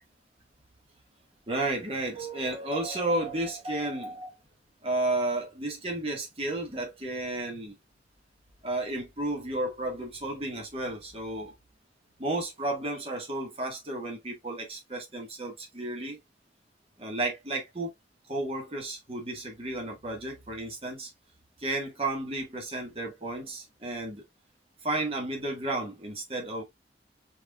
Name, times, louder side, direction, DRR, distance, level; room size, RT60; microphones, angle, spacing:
voice 1, 1.5-4.3 4.8-7.7 8.6-11.5 12.2-16.2 17.0-17.9 18.3-21.1 21.6-24.2 24.8-26.6, right 2 dB, 35° right, 1.7 m, -32 dB
4.7 x 4.6 x 2.4 m
head